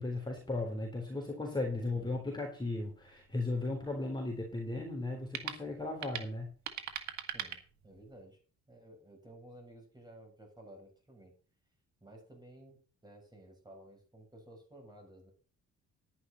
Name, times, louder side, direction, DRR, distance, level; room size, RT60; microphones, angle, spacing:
voice 1, 0.0-6.5, left 2 dB, 15° left, 0 dB, 3.8 m, -36 dB
voice 2, 1.7-2.3 7.3-7.6 7.8-8.4 8.7-11.3 12.0-15.3, right 1 dB, 15° right, 1 dB, 7.3 m, -54 dB
sound 1, 2.8-8.2, right 9 dB, 70° right, 1.8 m, -44 dB
10.5 x 10.5 x 4.2 m, 0.38 s
cardioid pair, 90°, 30 cm